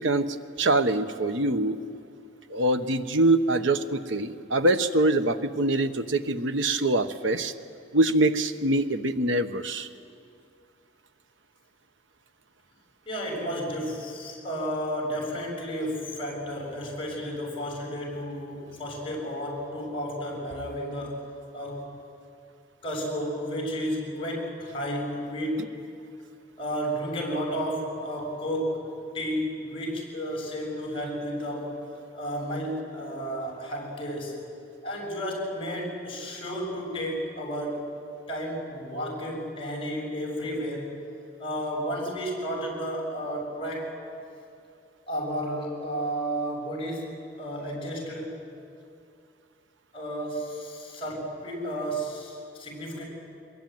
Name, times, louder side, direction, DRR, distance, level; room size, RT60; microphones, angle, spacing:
voice 1, 0.0-1.8 2.5-7.5 7.9-9.9, right 2 dB, 80° right, 9 dB, 1.1 m, -24 dB
voice 2, 13.1-21.3 21.5-21.9 22.8-25.7 26.6-28.9 29.1-31.7 32.1-34.4 34.8-37.9 38.3-40.9 41.4-43.9 45.1-48.4 49.9-53.1, equal, 30° left, -1 dB, 7.0 m, -32 dB
23.0 x 22.0 x 9.4 m, 2.4 s
head